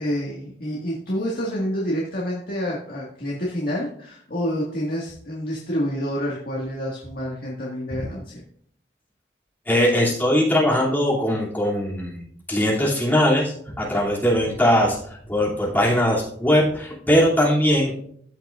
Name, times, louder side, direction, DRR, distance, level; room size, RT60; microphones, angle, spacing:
voice 1, 0.0-8.4, equal, 55° left, -4 dB, 1.8 m, -28 dB
voice 2, 9.7-17.9, equal, 10° left, -4 dB, 2.7 m, -20 dB
14.5 x 5.9 x 2.5 m, 0.66 s
head